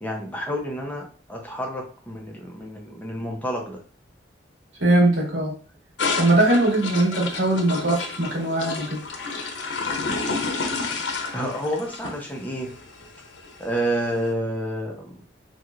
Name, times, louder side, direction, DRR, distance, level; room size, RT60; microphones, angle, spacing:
voice 1, 0.0-3.8 11.3-12.7 13.6-15.1, equal, 10° left, 0 dB, 0.6 m, -29 dB
voice 2, 4.8-5.5 6.2-9.0, right 1 dB, 85° right, -3 dB, 1.4 m, -20 dB
sound 1, 6.0-14.2, left 4 dB, 90° left, 0.6 m, -30 dB
3.1 x 2.8 x 2.4 m, 0.39 s
head